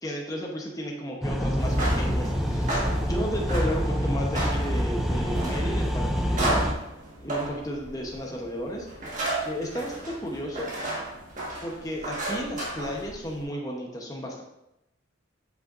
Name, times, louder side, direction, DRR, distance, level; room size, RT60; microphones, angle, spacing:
voice 1, 0.0-6.6 7.2-8.9 9.4-10.7 11.6-14.4, equal, 15° left, -1 dB, 0.9 m, -33 dB
sound 1, 1.2-6.7, equal, ahead, 0.4 m, -26 dB
sound 2, 1.5-13.4, right 1 dB, 35° right, 1.6 m, -34 dB
7.8 x 5.7 x 2.5 m, 0.88 s
head